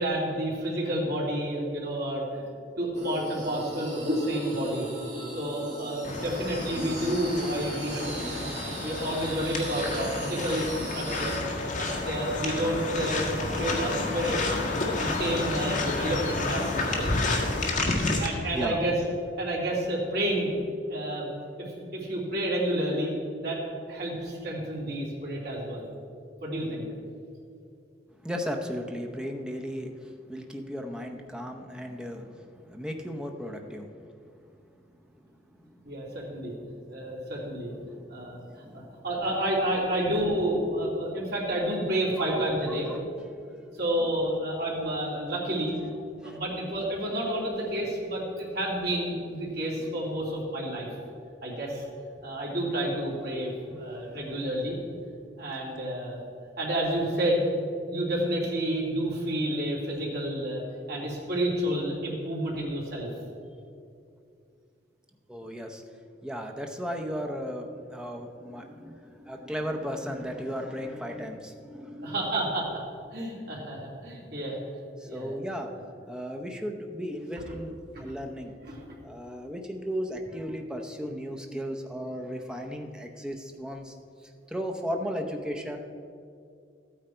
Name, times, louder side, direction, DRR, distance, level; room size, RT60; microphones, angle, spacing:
voice 1, 0.0-2.4 2.8-4.9 5.3-8.5 8.8-11.4 11.7-14.6 14.9-17.2 18.2-19.0 19.4-20.6 20.9-23.6 23.9-25.9 26.4-26.8 35.8-36.5 36.9-37.7 38.1-38.4 38.7-42.9 43.7-45.7 46.2-50.9 51.4-51.8 52.2-54.8 55.4-56.2 56.6-57.4 57.8-60.6 60.9-63.1 72.0-72.7 73.1-74.6 75.1-75.3 75.7-75.8 77.9-78.0 78.6-78.8, right 1 dB, 65° right, -4 dB, 2.9 m, -30 dB
sound 1, 2.9-11.4, right 1 dB, 45° right, 2.6 m, -36 dB
sound 2, 6.0-18.3, left 2 dB, 50° left, 1.6 m, -30 dB
voice 2, 28.2-33.9 35.6-35.8 36.3-36.4 36.6-36.8 37.8-38.1 38.6-38.9 41.7-41.8 42.2-43.0 43.5-43.6 46.2-46.4 53.7-54.1 65.3-65.8 66.2-72.2 75.0-75.7 76.1-77.7 78.0-78.5 79.0-83.9 84.5-85.8, equal, 5° right, 3 dB, 0.8 m, -35 dB
13.5 x 9.0 x 4.4 m, 2.4 s
head